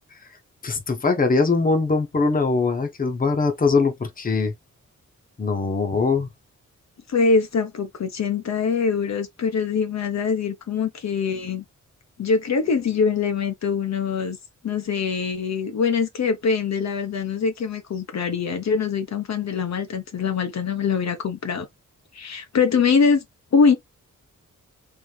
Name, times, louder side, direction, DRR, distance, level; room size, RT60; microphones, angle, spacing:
voice 1, 0.6-4.5 5.4-6.3, left 4 dB, 30° left, 1.0 m, -21 dB
voice 2, 7.1-11.6 12.2-14.4 14.6-21.7 22.1-23.2 23.5-23.8, left 5 dB, 60° left, 1.0 m, -23 dB
3.4 x 3.4 x 3.3 m
wide cardioid pair, 150°, 30 cm